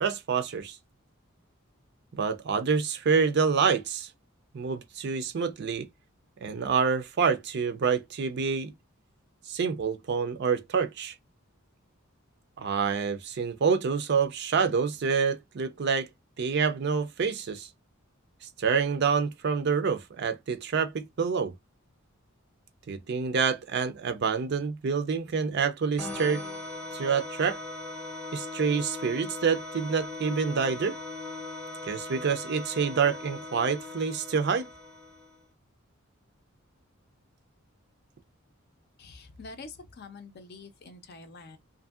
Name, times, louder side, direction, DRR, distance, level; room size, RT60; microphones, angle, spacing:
voice 1, 0.0-0.8 2.1-4.1 4.5-5.9 6.4-8.7 9.5-11.1 12.6-16.1 16.4-17.7 18.6-21.5 22.9-26.4 26.9-27.6 28.3-31.0 31.8-34.7, right 5 dB, 55° right, 0.4 m, -27 dB
sound 1, 26.0-35.4, left 2 dB, 5° left, 0.7 m, -39 dB
voice 2, 39.0-41.6, left 3 dB, 50° left, 0.5 m, -46 dB
2.6 x 2.6 x 2.4 m
head